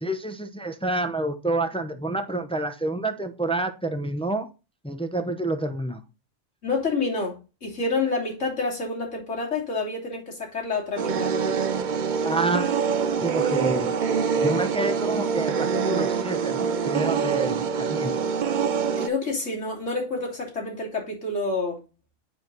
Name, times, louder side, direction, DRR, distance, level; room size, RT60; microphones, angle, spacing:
voice 1, 0.0-4.5 4.8-6.0 12.2-12.8 13.2-13.9 14.4-18.2, right 2 dB, 5° left, 0.5 m, -28 dB
voice 2, 6.6-11.3 18.7-21.8, left 3 dB, 70° left, 3.2 m, -28 dB
sound 1, 11.0-19.1, right 6 dB, 50° right, 0.6 m, -25 dB
9.3 x 4.5 x 4.0 m
omnidirectional pair, 1.3 m